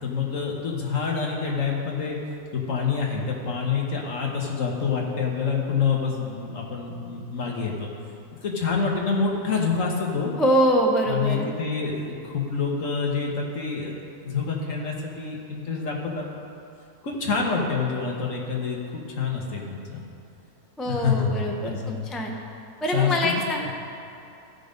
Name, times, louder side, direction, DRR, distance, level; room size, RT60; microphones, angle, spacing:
voice 1, 0.0-2.2 2.5-7.9 8.4-10.3 11.1-13.9 14.2-16.2 17.0-20.0 20.9-21.3 21.6-22.1 22.9-23.5, left 5 dB, 60° left, -1 dB, 1.6 m, -27 dB
voice 2, 10.4-11.5 20.8-22.3 22.8-23.7, equal, ahead, 0 dB, 0.4 m, -24 dB
14.5 x 5.3 x 5.2 m, 2.7 s
omnidirectional pair, 1.5 m